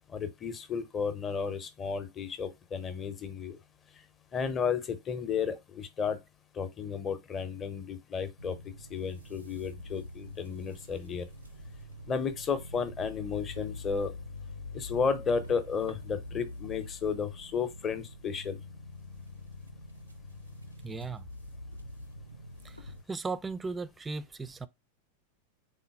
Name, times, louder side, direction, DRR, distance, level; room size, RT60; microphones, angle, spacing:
voice 1, 0.1-3.6 4.3-6.2 6.5-8.6 8.9-11.3 12.1-14.1 14.7-18.6, left 6 dB, 25° left, 0.6 m, -33 dB
sound 1, 8.4-23.0, left 2 dB, 85° right, 0.5 m, -45 dB
voice 2, 20.8-21.3 22.6-24.7, right 4 dB, 15° right, 0.3 m, -37 dB
3.9 x 3.7 x 2.3 m
figure-of-eight pair, 90°, 0 cm